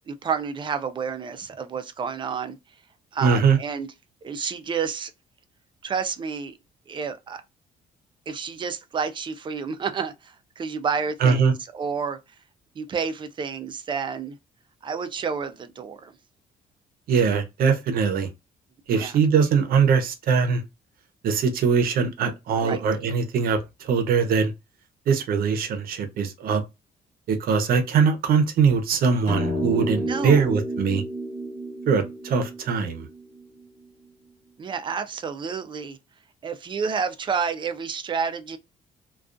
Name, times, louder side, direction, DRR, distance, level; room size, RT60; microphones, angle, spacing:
voice 1, 0.1-2.6 3.1-3.9 4.2-5.1 5.8-6.6 6.9-7.4 8.3-12.2 12.8-14.4 14.8-16.1 18.9-19.2 22.6-22.8 30.0-30.5 34.6-36.0 36.4-38.6, right 6 dB, 30° right, 0.4 m, -30 dB
voice 2, 3.2-3.6 11.2-11.5 17.1-18.3 18.9-20.6 21.2-24.5 25.1-26.6 27.3-31.0 31.9-33.1, right 6 dB, 65° right, 0.7 m, -21 dB
sound 1, 29.3-33.8, equal, 20° left, 1.1 m, -31 dB
2.3 x 2.3 x 2.4 m
cardioid pair, 125°, 16 cm